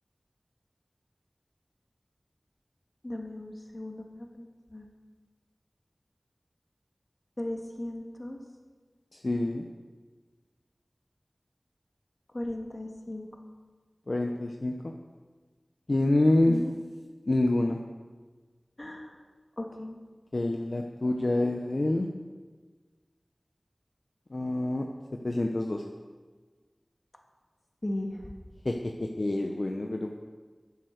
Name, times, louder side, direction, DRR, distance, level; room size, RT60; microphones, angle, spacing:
voice 1, 3.0-4.9 7.4-8.4 12.3-13.4 16.5-16.7 18.8-19.1 19.6-20.0 27.8-28.3, left 1 dB, 40° left, 2 dB, 1.8 m, -37 dB
voice 2, 9.1-9.7 14.1-14.9 15.9-16.6 17.3-17.8 20.3-22.1 24.3-24.9 25.2-25.8 28.6-30.2, left 2 dB, 60° left, 2 dB, 0.8 m, -27 dB
10.5 x 8.5 x 6.6 m, 1.4 s
wide cardioid pair, 45°, 0 cm